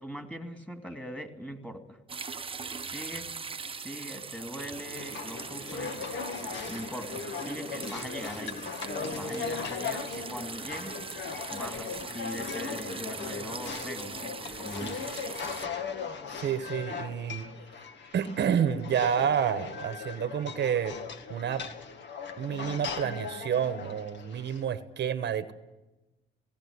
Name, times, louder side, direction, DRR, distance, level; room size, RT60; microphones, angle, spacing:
voice 1, 0.0-2.0 2.8-3.3 3.7-6.0 6.7-8.6 8.9-11.0 11.5-15.1, equal, 5° left, 5 dB, 2.6 m, -41 dB
sound 1, 2.1-15.7, right 5 dB, 25° right, 0.9 m, -41 dB
sound 2, 5.0-24.6, left 5 dB, 65° left, 2.1 m, -38 dB
voice 2, 16.4-17.5 18.1-21.0 21.3-21.6 22.4-25.5, right 8 dB, 60° right, 11 dB, 1.2 m, -29 dB
19.0 x 17.5 x 9.6 m, 1.1 s
cardioid pair, 90°, 20 cm